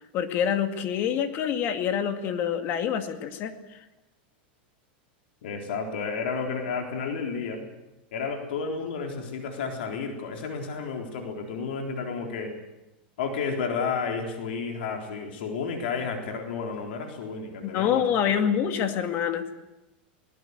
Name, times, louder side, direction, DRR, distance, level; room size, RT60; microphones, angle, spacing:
voice 1, 0.1-3.5 17.6-19.5, left 8 dB, 40° left, 8 dB, 2.2 m, -26 dB
voice 2, 5.4-7.6 8.1-12.6 13.2-18.0 18.4-18.5, left 5 dB, 75° left, 3 dB, 3.9 m, -31 dB
22.5 x 19.0 x 8.2 m, 0.99 s
supercardioid pair, 145°, 6 cm